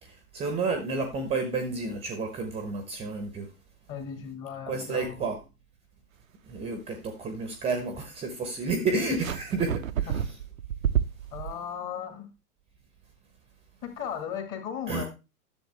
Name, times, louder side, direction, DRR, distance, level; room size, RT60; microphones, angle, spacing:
voice 1, 0.0-3.5 4.7-5.4 6.5-10.3 14.9-15.0, right 3 dB, 15° right, 1.0 m, -31 dB
voice 2, 3.9-5.2 10.1-10.2 11.3-12.3 13.8-15.0, left 8 dB, 25° left, 1.8 m, -36 dB
sound 1, 9.2-11.5, right 9 dB, 60° right, 0.7 m, -29 dB
10.5 x 7.0 x 3.3 m
figure-of-eight pair, 105°, 45 cm